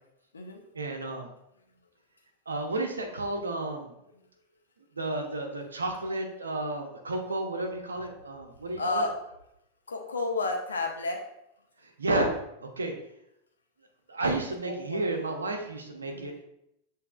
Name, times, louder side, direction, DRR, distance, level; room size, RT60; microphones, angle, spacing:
voice 1, 0.7-1.3 2.5-3.9 5.0-9.1 12.0-12.9 14.1-16.4, right 2 dB, 75° right, 3 dB, 0.8 m, -32 dB
voice 2, 8.8-9.1 9.9-11.2 14.6-15.0 16.1-16.4, left 3 dB, 70° left, 2 dB, 0.8 m, -31 dB
8.0 x 2.8 x 2.4 m, 0.80 s
figure-of-eight pair, 90°, 0 cm